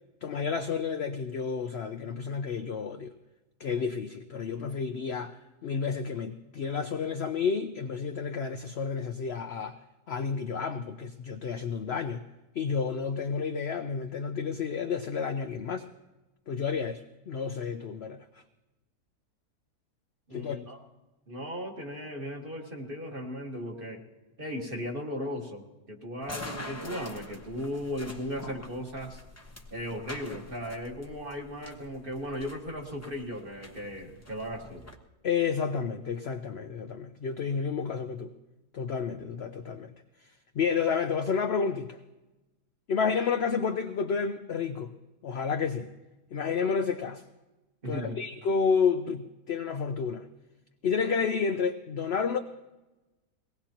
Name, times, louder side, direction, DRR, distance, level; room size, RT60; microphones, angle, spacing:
voice 1, 0.2-3.1 3.6-9.8 10.1-12.2 12.6-15.9 16.5-18.2 20.3-20.6 35.2-38.3 38.7-39.9 40.6-42.0 42.9-44.9 45.2-45.9 46.3-47.2 47.8-50.3 50.8-52.4, left 6 dB, 70° left, 7 dB, 0.6 m, -30 dB
voice 2, 20.3-20.8 21.3-24.0 24.4-29.2 29.7-34.8 47.8-48.2, equal, 35° right, 1 dB, 1.7 m, -37 dB
sound 1, 26.2-35.0, left 1 dB, 15° left, 0.7 m, -45 dB
22.5 x 18.5 x 2.9 m, 1.1 s
omnidirectional pair, 1.8 m